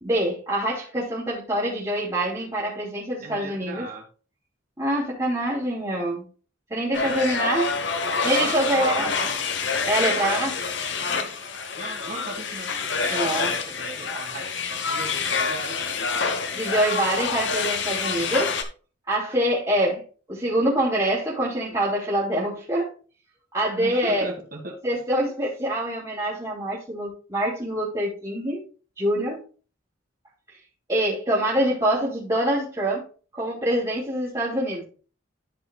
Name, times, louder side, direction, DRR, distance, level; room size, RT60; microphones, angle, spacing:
voice 1, 0.0-3.9 4.8-6.2 6.7-7.7 8.2-9.1 9.8-10.5 13.1-13.5 16.5-18.5 19.1-20.0 20.3-22.9 23.5-24.3 24.8-28.6 29.0-29.4 30.9-33.0 33.3-34.8, right 1 dB, 20° right, -9 dB, 3.2 m, -25 dB
voice 2, 3.2-4.1 7.0-7.2 8.4-9.3 10.0-10.7 11.7-16.6 23.8-25.0, right 2 dB, 45° right, 2 dB, 2.1 m, -38 dB
sound 1, 6.9-18.6, left 5 dB, 65° left, 1.1 m, -27 dB
13.5 x 5.6 x 2.4 m, 0.38 s
head